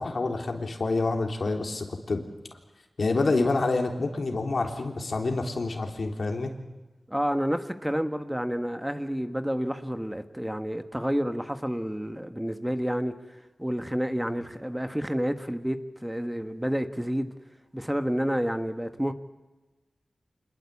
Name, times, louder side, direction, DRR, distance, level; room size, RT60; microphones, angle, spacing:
voice 1, 0.0-2.2 3.0-6.5, left 3 dB, 70° left, 3 dB, 3.5 m, -27 dB
voice 2, 7.1-13.1 13.6-17.3 17.7-19.1, equal, 5° right, 8 dB, 1.5 m, -29 dB
26.5 x 21.0 x 8.4 m, 1.1 s
wide cardioid pair, 65°, 0 cm